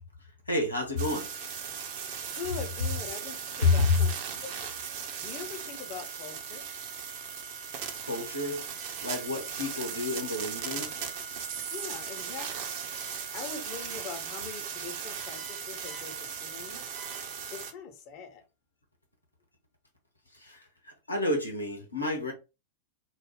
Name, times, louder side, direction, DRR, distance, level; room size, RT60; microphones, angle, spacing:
voice 1, 0.5-1.3 3.6-4.0 8.0-8.6 9.0-10.9 20.3-22.3, left 3 dB, 80° left, 0.8 m, -29 dB
sound 1, 1.0-17.7, right 7 dB, 50° right, 0.6 m, -38 dB
voice 2, 2.3-4.1 4.4-4.7 5.2-6.6 11.7-12.7 13.3-16.8 17.5-18.4, left 6 dB, 40° left, 0.6 m, -42 dB
2.4 x 2.0 x 3.4 m
figure-of-eight pair, 90°, 0 cm